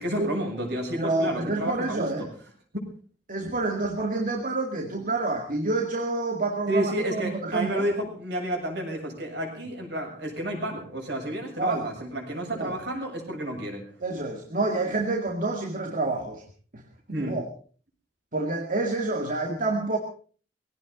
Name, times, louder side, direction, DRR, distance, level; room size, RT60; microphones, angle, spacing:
voice 1, 0.0-2.3 6.7-13.8 17.1-17.4, right 1 dB, 70° right, 3 dB, 7.3 m, -31 dB
voice 2, 1.0-2.3 3.3-7.8 11.6-11.9 12.6-12.8 14.0-16.4 16.7-16.8 17.2-17.5 18.3-20.0, right 2 dB, 50° right, 3 dB, 2.1 m, -28 dB
21.5 x 17.0 x 3.9 m, 0.41 s
head